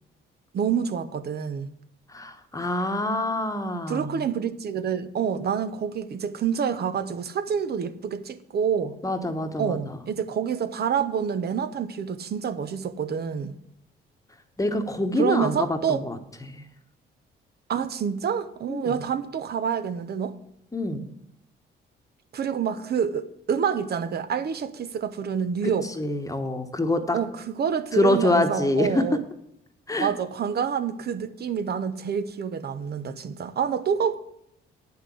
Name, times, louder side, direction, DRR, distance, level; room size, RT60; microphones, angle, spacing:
voice 1, 0.5-1.7 3.9-8.9 9.6-13.5 15.2-16.0 17.7-20.3 22.3-25.9 27.1-29.2 30.0-34.2, right 7 dB, 55° right, 1.0 m, -27 dB
voice 2, 2.1-4.2 9.0-9.8 14.6-16.6 18.7-18.9 20.7-21.0 26.0-27.2 27.9-29.0 29.9-30.1, left 1 dB, 15° left, 1.2 m, -26 dB
9.5 x 5.9 x 8.3 m
cardioid pair, 90°, 20 cm